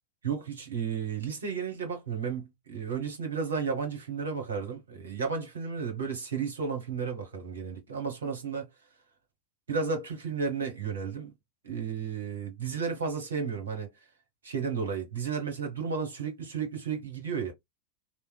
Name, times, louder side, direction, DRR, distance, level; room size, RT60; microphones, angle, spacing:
voice 1, 0.2-8.7 9.7-11.3 11.6-13.9 14.4-17.5, right 5 dB, 75° right, 1.1 m, -33 dB
3.1 x 2.1 x 2.3 m
figure-of-eight pair, 90°, 0 cm